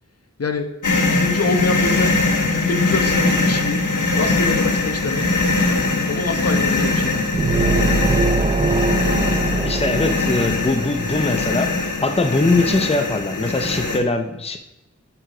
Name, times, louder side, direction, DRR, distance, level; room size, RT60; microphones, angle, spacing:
sound 1, 0.8-14.0, left 3 dB, 80° left, 1.5 m, -21 dB
voice 1, 1.0-3.8 4.2-5.3 6.1-7.3, left 3 dB, 50° left, 7 dB, 1.1 m, -25 dB
sound 2, 7.3-11.0, right 3 dB, 25° right, 0.5 m, -22 dB
voice 2, 9.6-14.6, left 2 dB, 20° left, 7 dB, 0.7 m, -21 dB
10.5 x 4.9 x 5.1 m, 0.91 s
wide cardioid pair, 55°, 30 cm